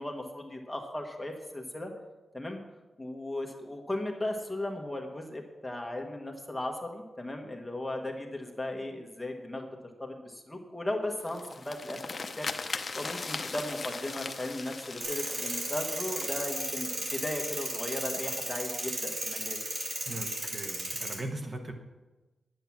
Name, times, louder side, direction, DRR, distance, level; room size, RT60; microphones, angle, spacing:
voice 1, 0.0-1.9 2.3-2.6 3.0-9.7 10.0-19.6, left 1 dB, 10° left, 2 dB, 1.4 m, -37 dB
sound 1, 11.2-17.3, left 4 dB, 40° left, 0.7 m, -39 dB
sound 2, 15.0-21.2, right 2 dB, 55° right, 3.2 m, -35 dB
voice 2, 20.0-21.7, right 1 dB, 35° right, 4 dB, 1.2 m, -39 dB
9.9 x 9.3 x 6.0 m, 1.2 s
wide cardioid pair, 140°, 0 cm